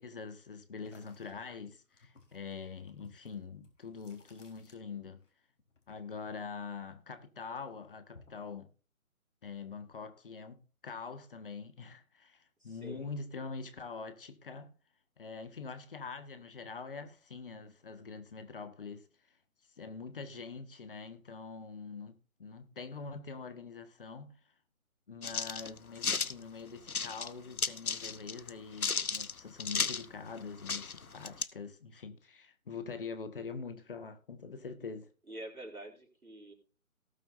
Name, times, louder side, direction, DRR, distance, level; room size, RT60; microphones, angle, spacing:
voice 1, 0.0-5.2 5.9-8.7 9.4-14.7 15.2-19.1 19.8-24.4 25.1-35.1, left 5 dB, 40° left, 1.6 m, -44 dB
monster bite, 0.8-5.3 5.6-7.2 7.5-8.5, left 3 dB, 60° left, 3.8 m, -61 dB
voice 2, 12.6-13.1 35.3-36.5, right 1 dB, 85° right, 4.6 m, -46 dB
sound 1, 25.2-26.3 26.9-27.3 27.6-28.5 28.8-30.1 30.4-30.5 30.7-31.4, left 5 dB, 80° left, 0.9 m, -34 dB
18.5 x 7.5 x 2.6 m
figure-of-eight pair, 150°, 42 cm